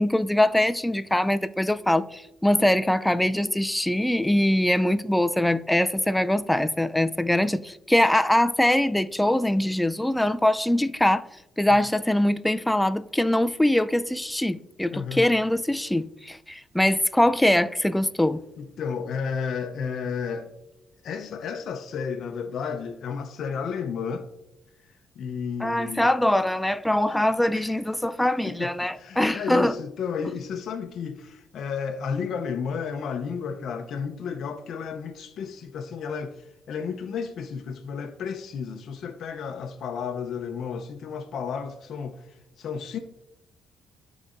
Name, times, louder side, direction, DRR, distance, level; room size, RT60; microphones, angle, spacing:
voice 1, 0.0-11.3 11.6-18.4 25.6-29.8, left 1 dB, 5° left, 0.3 m, -23 dB
voice 2, 14.9-15.3 18.6-20.5 21.0-24.3 25.2-26.1 27.1-27.2 27.5-27.8 28.4-43.0, left 6 dB, 70° left, 0.5 m, -32 dB
11.5 x 4.0 x 2.4 m
cardioid pair, 90°, 0 cm